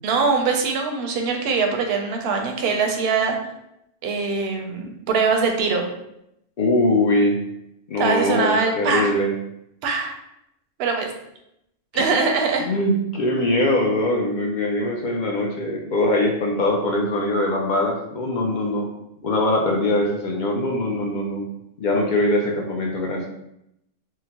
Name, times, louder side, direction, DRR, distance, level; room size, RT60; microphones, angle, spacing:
voice 1, 0.0-3.4 4.0-5.8 8.0-9.1 9.8-10.1 10.8-11.1 11.9-12.7, right 4 dB, 65° right, 3 dB, 0.7 m, -22 dB
voice 2, 6.6-7.4 7.9-9.3 11.9-12.0 12.6-18.9 19.2-21.5 21.8-23.3, left 1 dB, 60° left, 0 dB, 0.5 m, -22 dB
3.7 x 2.0 x 2.8 m, 0.81 s
omnidirectional pair, 1.3 m